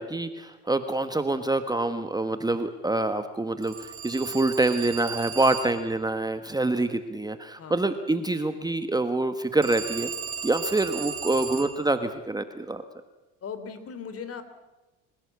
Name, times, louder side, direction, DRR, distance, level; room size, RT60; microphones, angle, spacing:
voice 1, 0.0-10.1 10.4-12.8, right 2 dB, 10° right, 9 dB, 1.3 m, -26 dB
Telephone, 3.6-5.9 9.6-11.8, right 7 dB, 35° right, 3.2 m, -36 dB
voice 2, 13.4-14.4, left 6 dB, 40° left, 11 dB, 3.2 m, -38 dB
25.5 x 16.5 x 8.4 m, 1.1 s
supercardioid pair, 90°, 37 cm